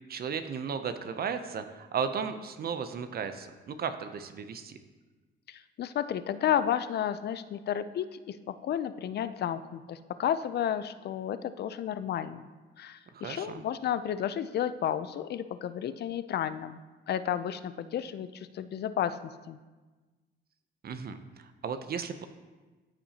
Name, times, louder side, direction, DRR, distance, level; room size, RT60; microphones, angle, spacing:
voice 1, 0.1-4.8 13.1-13.6 20.8-22.3, right 6 dB, 50° right, 9 dB, 0.6 m, -35 dB
voice 2, 5.5-12.5 12.8-16.8 17.1-19.6, left 9 dB, 55° left, 13 dB, 0.4 m, -32 dB
13.5 x 5.6 x 2.8 m, 1.3 s
cardioid pair, 90°, 20 cm